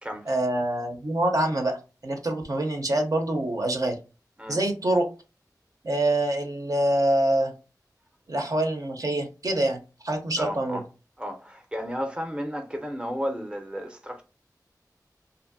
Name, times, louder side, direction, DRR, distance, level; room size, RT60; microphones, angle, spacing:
voice 1, 0.3-4.0 4.5-5.1 5.8-7.5 8.3-10.8, right 1 dB, 55° right, 0.6 m, -25 dB
voice 2, 10.4-10.8 11.2-14.2, equal, 15° right, 0.6 m, -33 dB
2.6 x 2.5 x 2.5 m
wide cardioid pair, 55°, 7 cm